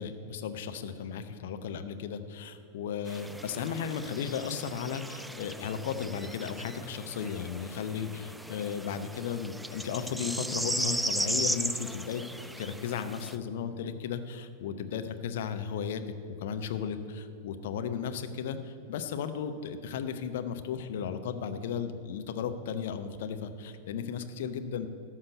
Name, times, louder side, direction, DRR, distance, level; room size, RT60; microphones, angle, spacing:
voice 1, 0.0-12.2 12.6-16.0 16.3-24.9, left 7 dB, 55° left, 9 dB, 0.7 m, -35 dB
sound 1, 3.1-13.4, right 1 dB, 5° right, 0.4 m, -36 dB
13.0 x 5.7 x 7.9 m, 2.4 s
figure-of-eight pair, 90°, 0 cm